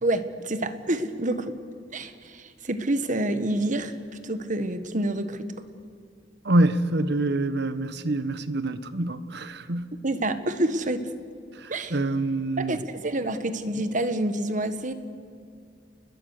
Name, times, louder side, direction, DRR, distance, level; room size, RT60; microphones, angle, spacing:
voice 1, 0.0-1.6 1.9-3.9 4.2-5.5 10.0-11.1 11.7-12.0 12.6-14.9, right 1 dB, 45° right, 1.5 m, -27 dB
voice 2, 6.4-9.9 11.5-12.8, right 2 dB, 65° right, 1.2 m, -26 dB
30.0 x 21.0 x 6.7 m
head